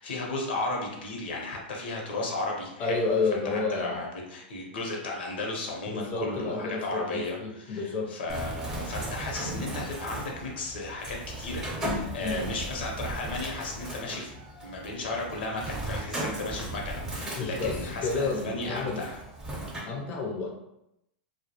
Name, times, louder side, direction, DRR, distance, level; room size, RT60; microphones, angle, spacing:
voice 1, 0.0-3.1 3.3-14.3 14.6-19.2, left 2 dB, 80° left, 0 dB, 0.7 m, -34 dB
voice 2, 2.8-4.0 5.8-8.2 12.2-12.4 17.4-19.1 19.9-20.5, left 4 dB, 30° left, 0 dB, 0.4 m, -30 dB
Bird, 8.3-19.8, right 1 dB, 10° right, 0.7 m, -36 dB
2.2 x 2.0 x 2.8 m, 0.84 s
hypercardioid pair, 125°, 5 cm